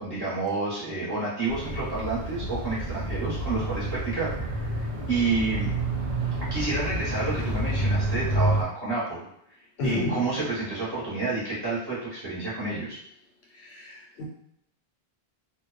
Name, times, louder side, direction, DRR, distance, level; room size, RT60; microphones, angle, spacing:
voice 1, 0.0-5.7 6.5-9.2 9.8-13.0, right 3 dB, 25° right, -9 dB, 0.9 m, -29 dB
sound 1, 1.5-8.6, right 1 dB, 80° right, 1.0 m, -29 dB
voice 2, 9.8-10.2 13.6-14.3, left 1 dB, 75° left, -3 dB, 0.8 m, -30 dB
2.4 x 2.1 x 2.3 m, 0.74 s
omnidirectional pair, 1.1 m